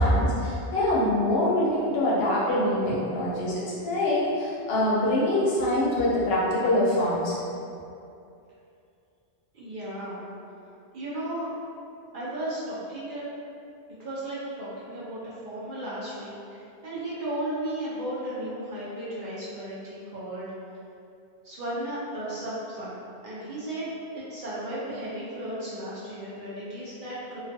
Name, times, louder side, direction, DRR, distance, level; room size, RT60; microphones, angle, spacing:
voice 1, 0.0-7.4, left 1 dB, 65° left, -6 dB, 0.7 m, -24 dB
voice 2, 9.5-10.2 10.9-11.5 12.1-13.2 14.0-20.5 21.4-27.4, right 1 dB, 55° right, -9 dB, 0.7 m, -35 dB
2.3 x 2.3 x 2.6 m, 2.6 s
omnidirectional pair, 1.2 m